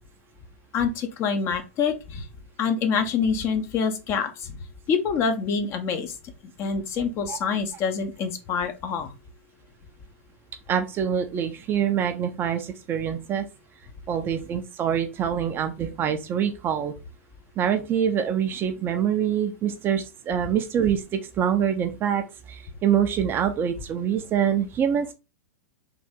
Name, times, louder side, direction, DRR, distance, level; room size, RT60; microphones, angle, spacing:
voice 1, 0.7-2.2 2.6-4.5 4.9-6.1 6.6-9.1, left 6 dB, 35° left, 7 dB, 0.8 m, -26 dB
voice 2, 10.7-13.5 14.1-16.9 17.6-25.1, right 8 dB, 25° right, 7 dB, 0.5 m, -25 dB
3.8 x 2.6 x 3.5 m, 0.28 s
figure-of-eight pair, 100°, 8 cm